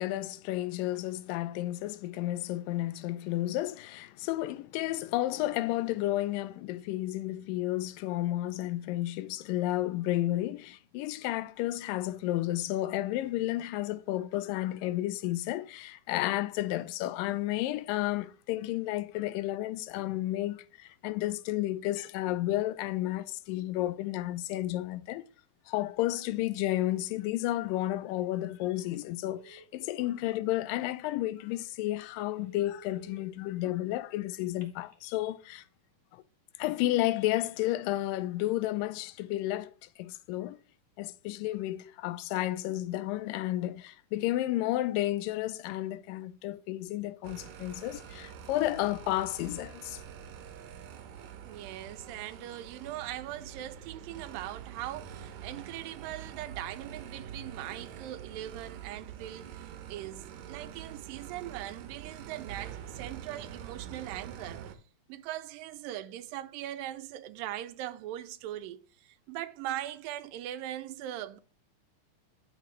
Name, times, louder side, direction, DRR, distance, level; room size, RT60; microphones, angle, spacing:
voice 1, 0.0-25.3 25.7-35.6 36.1-36.2 36.6-39.7 40.0-40.6 41.0-50.0, left 15 dB, 85° left, 2.2 m, -32 dB
Telephone, 28.8-29.0 29.4-30.4 31.0-31.1 31.5-31.6 32.1-33.2 34.4-35.0, right 6 dB, 20° left, 0.8 m, -55 dB
sound 1, 47.2-64.7, right 9 dB, 70° right, 2.0 m, -45 dB
voice 2, 51.4-64.6 65.1-71.4, right 13 dB, 90° right, 2.4 m, -40 dB
10.5 x 6.0 x 3.1 m
omnidirectional pair, 3.9 m